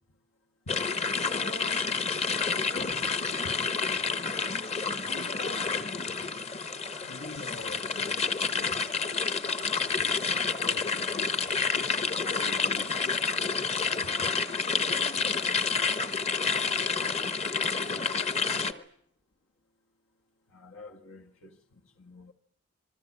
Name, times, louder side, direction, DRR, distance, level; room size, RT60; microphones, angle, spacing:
sound 1, 0.7-18.7, left 5 dB, 30° left, 1.0 m, -29 dB
voice 1, 1.2-2.1 5.0-6.3 6.7-6.8 14.6-17.1 17.4-18.9, left 1 dB, 60° left, 2.1 m, -47 dB
voice 2, 2.7-3.5 7.0-8.8 9.1-9.4 9.8-11.5 12.1-13.2 14.0-14.1 20.5-22.3, left 2 dB, 80° left, 1.6 m, -46 dB
27.0 x 21.0 x 8.5 m
head